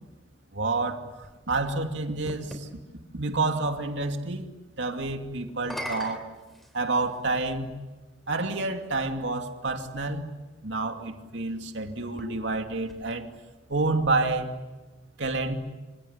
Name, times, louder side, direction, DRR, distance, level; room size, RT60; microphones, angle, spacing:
voice 1, 0.5-1.0 1.5-2.7 3.1-4.5 4.8-6.3 6.7-7.7 8.3-10.3 10.6-13.3 13.7-14.5 15.2-15.5, right 3 dB, 70° right, 5 dB, 2.7 m, -28 dB
sound 1, 0.8-2.7 5.5-7.3 8.2-8.3 12.0-13.6, equal, ahead, 3.4 m, -42 dB
26.5 x 26.5 x 8.2 m, 1.2 s
head